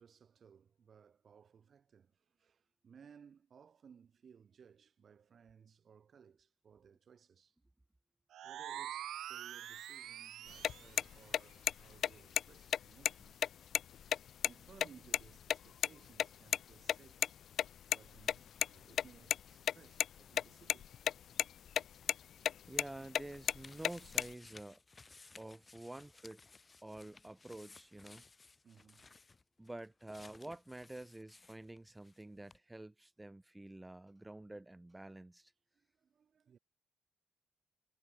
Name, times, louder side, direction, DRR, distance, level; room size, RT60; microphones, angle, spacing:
voice 1, 0.0-7.5 8.4-13.4 14.4-17.3 17.9-20.9 28.6-29.1 35.7-36.6, right 7 dB, 50° right, 5.0 m, -62 dB
sound 1, 8.3-11.0, right 11 dB, 75° right, 0.5 m, -45 dB
sound 2, 10.5-15.6 15.8-15.9 16.2-16.3 16.5-16.6 16.9-17.0 17.2-17.3 17.6-18.7 18.9-19.4 19.7-20.4 20.7-21.1 21.4-21.8 22.1-22.2 22.5-22.9 23.1-24.3, left 9 dB, 65° left, 0.3 m, -32 dB
voice 2, 22.7-24.8 25.4-26.4 26.8-28.2 29.6-35.5, right 1 dB, 10° right, 3.8 m, -49 dB
sound 3, 23.2-32.2 32.5-32.6, left 3 dB, 25° left, 4.5 m, -60 dB
cardioid pair, 90°, 0 cm